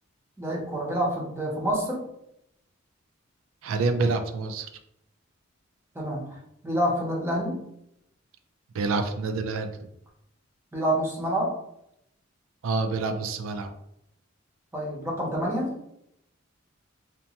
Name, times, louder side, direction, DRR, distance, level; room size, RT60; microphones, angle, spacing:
voice 1, 0.4-2.0 5.9-6.4 6.6-7.6 10.7-11.5 14.7-15.7, equal, 10° right, -2 dB, 0.7 m, -27 dB
voice 2, 3.6-4.7 8.7-9.9 12.6-13.7, right 3 dB, 85° right, 8 dB, 0.4 m, -27 dB
2.9 x 2.1 x 2.7 m, 0.78 s
head